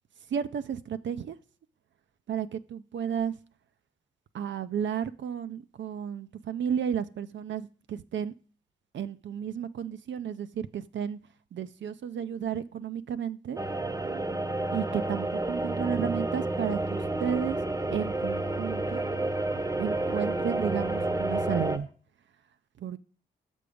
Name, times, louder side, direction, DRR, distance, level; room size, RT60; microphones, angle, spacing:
voice 1, 0.3-1.4 2.3-3.3 4.3-8.3 8.9-11.2 11.5-13.6 14.7-17.6 17.9-19.1 19.8-21.9 22.8-23.0, right 8 dB, 60° right, 11 dB, 0.5 m, -33 dB
sound 1, 13.6-21.8, right 2 dB, 15° right, 0.8 m, -30 dB
6.7 x 5.3 x 4.9 m, 0.40 s
supercardioid pair, 40°, 21 cm